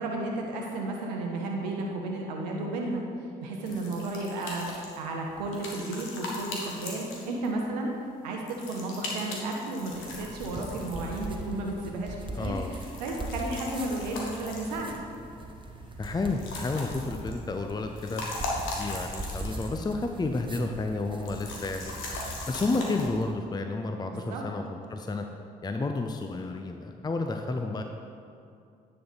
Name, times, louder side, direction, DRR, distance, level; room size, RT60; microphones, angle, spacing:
voice 1, 0.0-7.9 8.2-15.0 24.1-24.4, right 2 dB, 85° right, 0 dB, 0.7 m, -33 dB
sound 1, 3.6-7.6 8.5-11.5 12.4-15.2 16.0-17.4 17.8-19.9 20.2-20.3 21.2-23.1, left 2 dB, 70° left, 1.5 m, -39 dB
sound 2, 9.9-23.3, right 1 dB, 25° right, 1.1 m, -41 dB
voice 2, 12.3-12.7 16.0-18.2 18.8-21.9 22.5-24.6 24.9-25.3 25.6-27.8, left 3 dB, 20° left, 5 dB, 0.5 m, -31 dB
9.5 x 5.5 x 4.0 m, 2.5 s
hypercardioid pair, 45°, 21 cm